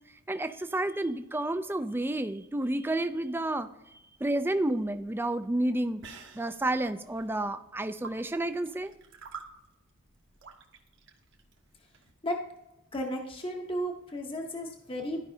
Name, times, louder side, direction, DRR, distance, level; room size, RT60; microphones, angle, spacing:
voice 1, 0.3-3.7 4.2-6.0 6.3-8.9, right 1 dB, 10° right, 10 dB, 0.4 m, -30 dB
sound 1, 4.3-12.1, right 5 dB, 55° right, 1.2 m, -50 dB
voice 2, 12.9-15.2, equal, 25° left, 1 dB, 0.8 m, -34 dB
13.0 x 5.3 x 2.7 m, 0.94 s
head